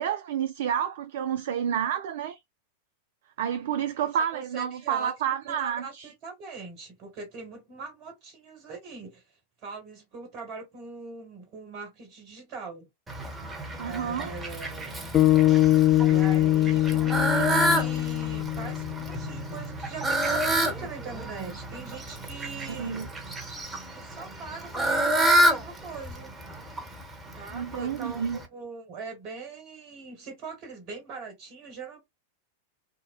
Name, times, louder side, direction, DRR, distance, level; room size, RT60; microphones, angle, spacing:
voice 1, 0.0-2.4 3.4-6.1 13.8-14.3 22.7-23.1 27.5-28.4, right 8 dB, 55° right, 0.3 m, -29 dB
voice 2, 4.3-5.1 5.5-9.2 9.6-12.9 13.8-15.0 16.0-23.1 23.9-26.4 27.4-28.2 28.5-32.0, right 4 dB, 40° right, 1.6 m, -41 dB
Fowl, 13.1-28.5, right 1 dB, 10° right, 1.1 m, -29 dB
sound 1, 15.1-19.5, left 14 dB, 30° left, 0.4 m, -22 dB
3.8 x 2.1 x 2.3 m
figure-of-eight pair, 90°, 0 cm